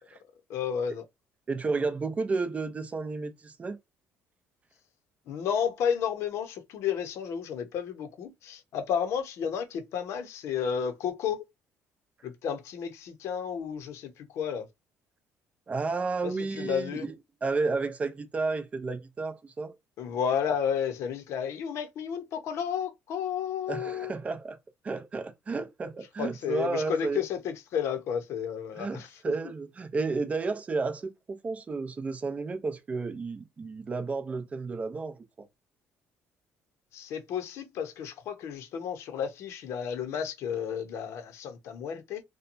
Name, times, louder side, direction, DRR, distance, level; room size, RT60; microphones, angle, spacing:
voice 1, 0.5-1.0 5.3-11.4 12.2-14.7 16.2-17.1 20.0-24.1 26.2-29.1 36.9-42.2, left 8 dB, 65° left, 0.7 m, -32 dB
voice 2, 1.5-3.8 15.7-17.1 17.4-19.7 23.7-24.6 24.8-27.2 28.8-35.5, right 4 dB, 25° right, 0.5 m, -32 dB
2.9 x 2.2 x 2.5 m
cardioid pair, 110°, 5 cm